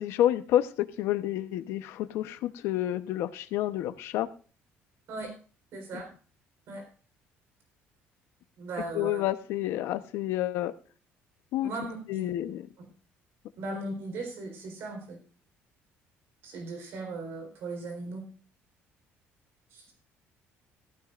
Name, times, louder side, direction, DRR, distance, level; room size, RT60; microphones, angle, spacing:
voice 1, 0.0-4.3 5.9-6.0 8.9-10.7 11.5-11.7 12.1-12.6, left 13 dB, 75° left, 10 dB, 1.0 m, -29 dB
voice 2, 5.7-6.1 6.7-6.9 8.6-9.2 11.6-12.3 12.8-12.9 13.6-15.2 16.4-18.3 19.7-19.9, right 2 dB, 60° right, 3 dB, 4.1 m, -38 dB
15.0 x 14.5 x 2.5 m, 0.38 s
cardioid pair, 150°, 4 cm